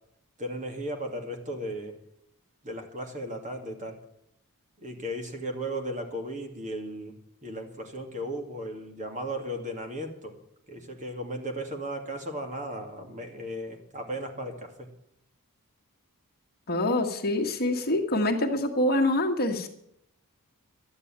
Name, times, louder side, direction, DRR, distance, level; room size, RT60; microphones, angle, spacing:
voice 1, 0.4-2.0 2.6-4.0 4.8-7.1 7.4-10.3 10.7-14.9, right 1 dB, 35° right, 4 dB, 2.3 m, -36 dB
voice 2, 16.7-19.7, left 1 dB, 45° left, 1 dB, 1.8 m, -25 dB
12.0 x 9.7 x 8.9 m, 0.78 s
head